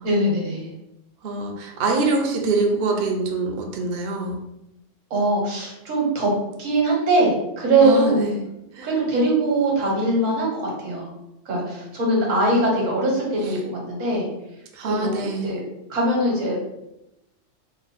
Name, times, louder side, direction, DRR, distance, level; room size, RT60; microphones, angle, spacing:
voice 1, 0.0-0.7 5.1-6.3 6.6-8.2 8.8-11.1 11.5-14.3 14.8-15.6 15.9-16.6, right 2 dB, 80° right, -1 dB, 1.3 m, -21 dB
voice 2, 1.2-4.4 7.8-8.4 8.7-8.9 14.7-15.5, right 3 dB, 60° right, 2 dB, 0.7 m, -24 dB
3.0 x 2.0 x 4.0 m, 0.89 s
omnidirectional pair, 1.3 m